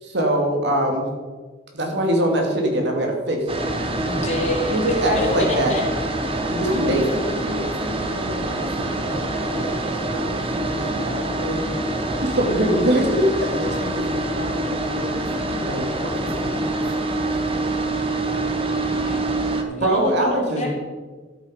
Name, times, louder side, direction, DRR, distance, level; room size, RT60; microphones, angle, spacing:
voice 1, 0.0-1.1 1.7-3.6 4.7-5.7 6.5-7.0 12.2-13.5 15.5-16.3 19.8-20.7, right 1 dB, 65° right, 1 dB, 2.6 m, -22 dB
sound 1, 3.5-19.6, right 1 dB, 30° right, 1.2 m, -25 dB
voice 2, 4.0-4.8 5.1-5.8 18.9-19.3 19.7-20.7, left 1 dB, 40° left, -1 dB, 3.1 m, -27 dB
voice 3, 6.7-11.6 12.5-13.1 13.5-15.3 16.3-16.8 17.2-17.7, equal, 85° right, -2 dB, 3.8 m, -33 dB
13.0 x 8.3 x 5.2 m, 1.3 s
head